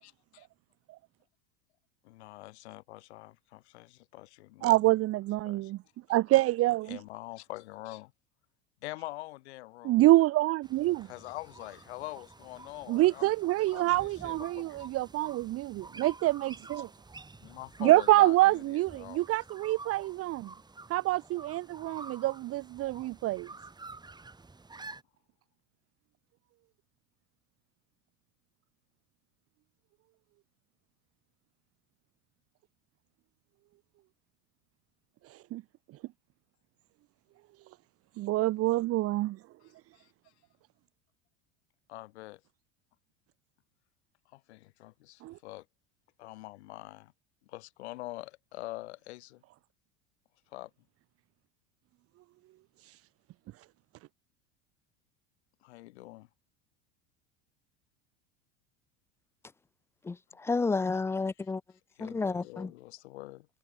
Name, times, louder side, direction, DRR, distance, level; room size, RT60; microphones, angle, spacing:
voice 1, 0.0-0.5 2.0-4.8 5.5-5.7 6.1-6.2 6.9-8.1 8.8-10.0 11.0-13.3 13.6-14.9 17.4-19.2 39.6-40.1 41.9-42.4 44.3-45.7 46.2-47.1 47.4-49.4 50.5-50.7 55.6-56.3 62.0-63.5, left 18 dB, 80° left, 5.2 m, -45 dB
voice 2, 4.6-5.8 6.1-7.0 9.8-11.1 12.9-16.9 17.8-20.5 20.9-23.5 35.3-35.6 38.2-39.4 45.2-45.4 52.8-52.9, right 17 dB, 45° right, 0.9 m, -26 dB
sound 1, 10.6-25.0, right 3 dB, 15° right, 3.0 m, -50 dB
voice 3, 60.1-61.6 62.0-62.7, left 4 dB, 10° left, 0.3 m, -31 dB
supercardioid pair, 100°, 33 cm